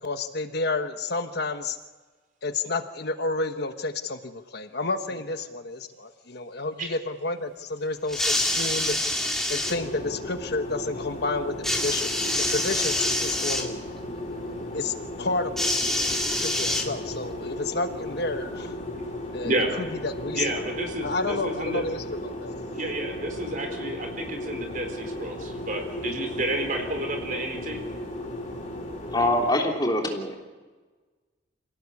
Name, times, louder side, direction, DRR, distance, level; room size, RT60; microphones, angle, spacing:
voice 1, 0.0-1.8 2.4-9.0 9.5-13.8 14.7-15.9 16.4-18.7 19.3-20.6 21.0-22.5, left 3 dB, 55° left, 8 dB, 1.1 m, -30 dB
sound 1, 8.1-9.8 11.6-13.7 15.6-17.3 18.2-18.3, left 1 dB, ahead, 2.2 m, -26 dB
sound 2, 9.6-29.5, left 1 dB, 40° left, 3.6 m, -35 dB
voice 2, 20.3-21.8 22.7-27.8, right 1 dB, 45° right, 4 dB, 4.5 m, -30 dB
voice 3, 29.1-30.4, left 1 dB, 20° left, 1 dB, 3.4 m, -24 dB
26.0 x 17.5 x 8.4 m, 1.3 s
head